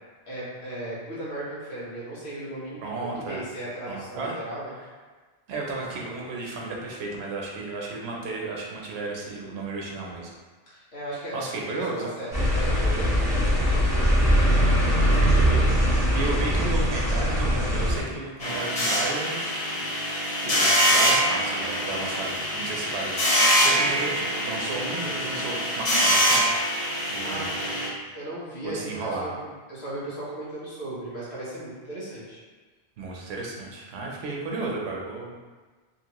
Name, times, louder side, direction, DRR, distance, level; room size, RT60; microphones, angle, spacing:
voice 1, 0.3-4.7 10.7-11.4 12.0-14.1 26.9-32.4, right 1 dB, 90° left, -8 dB, 1.3 m, -37 dB
voice 2, 2.8-3.4 3.9-4.3 5.5-10.3 11.3-12.1 14.9-19.6 19.9-26.5 27.1-27.5 28.6-29.3 33.0-35.4, right 3 dB, 90° right, -2 dB, 0.9 m, -33 dB
sound 1, 12.3-18.0, equal, 5° right, 0.9 m, -21 dB
sound 2, 18.4-27.9, equal, 40° left, 0.7 m, -24 dB
2.9 x 2.6 x 2.9 m, 1.4 s
omnidirectional pair, 1.0 m